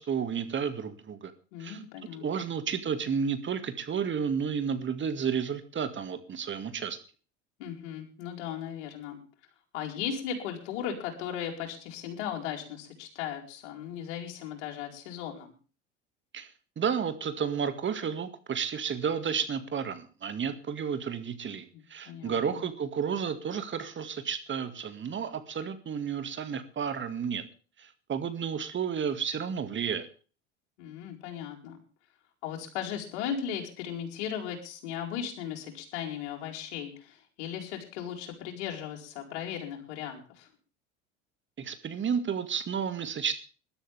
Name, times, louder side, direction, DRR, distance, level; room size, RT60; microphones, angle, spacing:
voice 1, 0.0-1.3 1.6-1.8 2.2-7.0 16.3-27.4 27.8-30.1 41.6-43.3, right 7 dB, 30° right, 10 dB, 2.2 m, -32 dB
voice 2, 1.5-2.5 7.6-9.2 9.7-15.5 21.7-22.6 30.8-31.8 32.4-40.5, left 8 dB, 70° left, 1 dB, 4.7 m, -37 dB
21.0 x 12.5 x 3.5 m, 0.37 s
hypercardioid pair, 75°, 36 cm